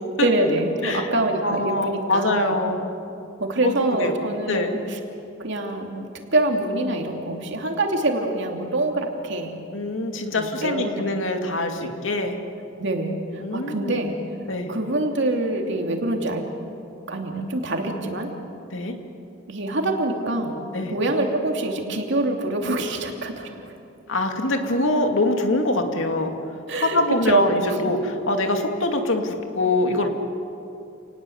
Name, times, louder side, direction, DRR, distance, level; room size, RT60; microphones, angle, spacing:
voice 1, 0.2-2.6 3.4-5.0 5.4-9.6 10.3-11.0 11.8-11.9 12.8-14.2 14.7-16.4 17.1-18.3 19.5-20.6 20.9-23.6 26.7-27.9, right 2 dB, 65° right, 2 dB, 2.9 m, -25 dB
voice 2, 1.4-2.9 3.6-4.2 4.5-4.8 9.7-12.4 13.4-13.9 14.5-14.7 18.7-19.0 20.7-20.9 24.1-26.3 26.9-30.1, left 2 dB, 75° left, 4 dB, 2.4 m, -24 dB
29.5 x 19.5 x 8.0 m, 2.8 s
head